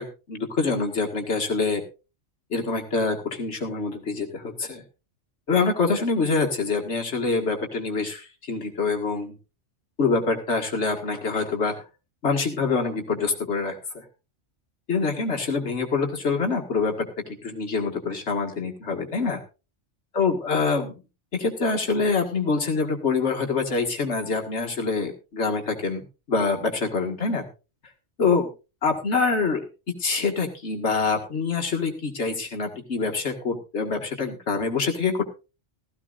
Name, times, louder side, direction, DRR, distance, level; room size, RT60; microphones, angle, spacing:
voice 1, 0.0-1.8 2.5-4.8 5.5-9.4 10.0-11.8 12.2-14.0 14.9-17.1 17.4-19.4 20.1-21.0 21.3-27.5 28.2-28.5 28.8-29.7 30.0-35.3, left 4 dB, 70° left, 3 dB, 2.2 m, -25 dB
16.0 x 14.5 x 2.5 m, 0.30 s
omnidirectional pair, 1.2 m